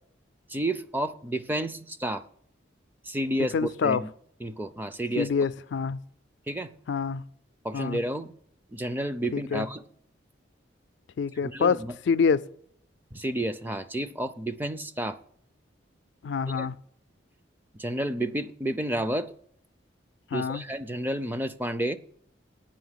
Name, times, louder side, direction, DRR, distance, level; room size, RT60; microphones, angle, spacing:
voice 1, 0.5-2.2 3.0-4.1 4.4-5.3 6.5-6.7 7.6-8.3 8.7-9.8 11.4-11.9 13.1-15.2 16.6-16.7 17.8-19.3 20.3-22.0, right 1 dB, 10° right, 0.4 m, -30 dB
voice 2, 3.5-4.0 5.2-6.0 6.9-7.2 7.7-8.0 9.3-9.7 11.2-11.8 12.1-12.4 16.2-16.8 20.3-20.6, left 5 dB, 65° left, 0.4 m, -26 dB
8.7 x 5.4 x 7.9 m
head